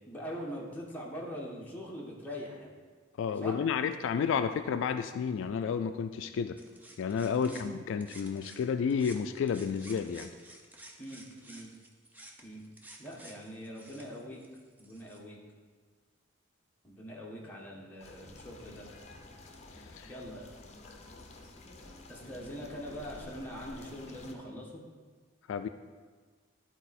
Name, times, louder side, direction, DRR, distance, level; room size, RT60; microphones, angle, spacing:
voice 1, 0.1-2.7 3.4-3.6 7.4-7.6 11.0-11.7 12.4-12.6 13.0-14.4 14.8-15.4 16.8-18.8 20.1-20.5 22.1-24.8, equal, 10° left, -4 dB, 1.4 m, -42 dB
voice 2, 3.2-6.6 7.0-10.3 19.8-20.1 25.5-25.7, left 6 dB, 65° left, 10 dB, 0.3 m, -31 dB
sound 1, 6.6-8.6 8.9-15.2, right 1 dB, 10° right, 0.7 m, -53 dB
sound 2, 18.0-24.3, left 2 dB, 35° left, 0.8 m, -50 dB
11.5 x 4.4 x 4.2 m, 1.5 s
head